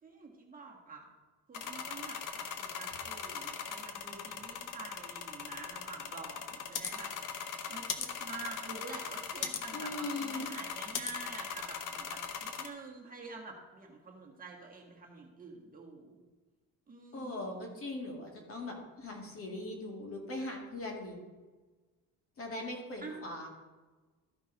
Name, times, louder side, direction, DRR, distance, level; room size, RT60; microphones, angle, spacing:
voice 1, 0.0-1.0 1.5-7.3 7.7-16.2 16.9-17.7 23.0-23.2, right 3 dB, 25° right, -1 dB, 1.6 m, -48 dB
sound 1, 1.5-12.7, left 7 dB, 65° left, 1.0 m, -40 dB
voice 2, 9.7-10.5 17.1-21.2 22.4-23.5, left 1 dB, 40° left, 1 dB, 2.1 m, -40 dB
13.5 x 5.2 x 4.0 m, 1.3 s
cardioid pair, 120°, 35 cm